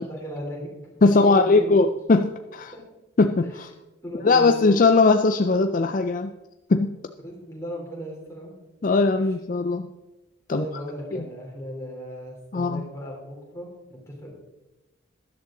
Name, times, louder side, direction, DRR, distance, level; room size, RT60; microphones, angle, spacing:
voice 1, 0.0-1.8 2.7-2.8 4.0-4.6 7.2-8.5 9.2-9.3 10.5-14.3, equal, 15° left, -3 dB, 3.4 m, -37 dB
voice 2, 1.0-2.7 3.2-3.7 4.2-6.3 6.7-7.0 8.8-9.9 10.5-10.6 11.1-11.2 12.5-12.8, left 3 dB, 45° left, 7 dB, 0.4 m, -20 dB
13.0 x 11.0 x 3.8 m, 1.0 s
head